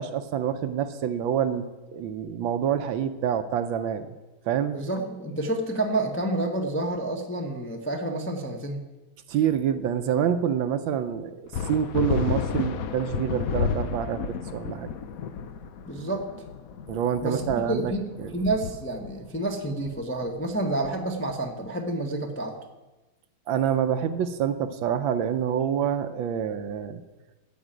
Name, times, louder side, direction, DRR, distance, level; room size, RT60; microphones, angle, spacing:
voice 1, 0.0-1.7 1.9-4.1 4.5-4.8 9.3-14.9 16.9-17.9 18.2-18.3 23.5-27.0, right 8 dB, 70° right, 10 dB, 1.3 m, -27 dB
voice 2, 4.7-8.8 15.9-16.3 17.2-18.0 18.3-22.6, right 2 dB, 10° left, 2 dB, 0.5 m, -29 dB
sound 1, 11.5-21.5, left 6 dB, 80° left, 0.7 m, -32 dB
13.0 x 5.2 x 8.9 m, 1.1 s
omnidirectional pair, 2.4 m